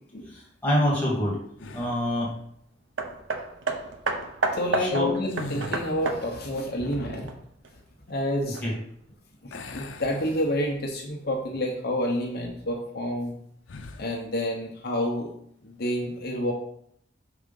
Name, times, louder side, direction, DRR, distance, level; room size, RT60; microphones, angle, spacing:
voice 1, 0.3-1.4 1.7-2.3 4.7-5.1 8.4-8.8, left 1 dB, 10° left, -4 dB, 2.0 m, -26 dB
sound 1, 1.6-2.2 5.1-6.2 9.5-10.9 11.4-11.6 13.6-14.1, left 3 dB, 80° left, 0.7 m, -40 dB
Hammer, 3.0-7.7 8.5-8.6, right 3 dB, 85° right, 0.8 m, -31 dB
voice 2, 4.5-7.3 8.1-8.6 9.4-13.3 14.0-15.3 15.6-16.5, equal, 55° left, 0 dB, 0.9 m, -29 dB
5.9 x 3.7 x 5.3 m, 0.69 s
head